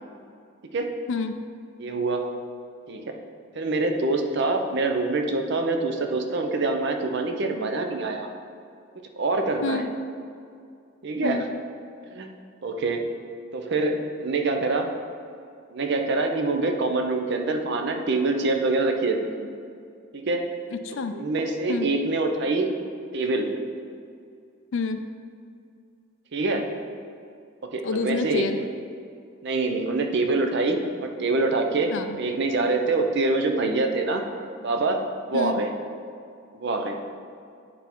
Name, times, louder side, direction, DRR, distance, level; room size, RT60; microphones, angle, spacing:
voice 1, 1.8-2.3 2.9-3.2 3.6-8.3 9.2-9.8 11.0-11.5 12.1-12.3 12.6-13.1 13.5-14.9 15.7-19.5 20.1-20.5 21.1-22.7 23.1-23.5 26.3-26.7 27.6-28.6 29.4-31.9 32.2-34.2 34.6-35.7 36.5-37.0, right 3 dB, 55° right, 5 dB, 0.6 m, -25 dB
voice 2, 20.7-21.2 21.7-21.9 24.7-25.0 27.8-28.6 31.9-32.2 35.3-35.6, left 4 dB, 60° left, 8 dB, 0.4 m, -28 dB
9.0 x 3.4 x 4.4 m, 2.3 s
head